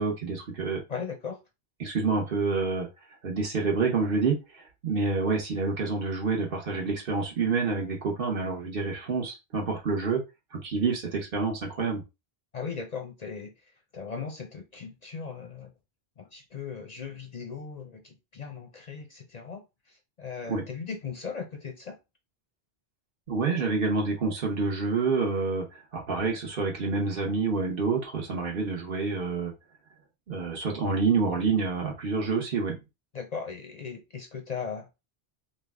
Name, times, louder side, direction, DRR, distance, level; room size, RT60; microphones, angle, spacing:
voice 1, 0.0-0.8 1.8-2.9 3.2-10.2 10.5-12.0 20.5-20.6 23.3-25.6 25.9-29.5 30.3-32.8, right 4 dB, 65° right, 1.0 m, -28 dB
voice 2, 0.9-1.4 12.5-15.7 16.2-22.0 33.1-34.9, left 5 dB, 50° left, 0.5 m, -38 dB
3.3 x 2.1 x 3.4 m
omnidirectional pair, 1.1 m